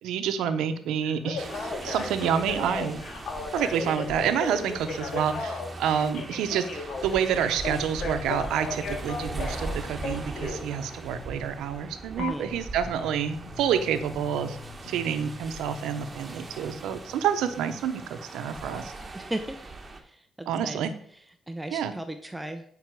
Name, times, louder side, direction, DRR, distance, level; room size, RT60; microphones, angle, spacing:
voice 1, 0.0-3.0 3.5-14.6 14.8-18.9 20.5-20.9 21.7-21.9, right 8 dB, 85° right, 9 dB, 0.9 m, -28 dB
Telephone, 1.0-10.6 12.2-12.3, left 4 dB, 65° left, 2.1 m, -35 dB
sound 1, 1.4-20.0, right 2 dB, 25° right, 1.4 m, -40 dB
voice 2, 12.2-12.5 19.1-19.6 20.0-20.8 21.5-22.6, right 1 dB, 10° right, 7 dB, 0.8 m, -36 dB
sound 2, 12.4-18.4, left 6 dB, 85° left, 1.7 m, -48 dB
9.2 x 5.7 x 4.7 m, 0.63 s
cardioid pair, 90°, 0 cm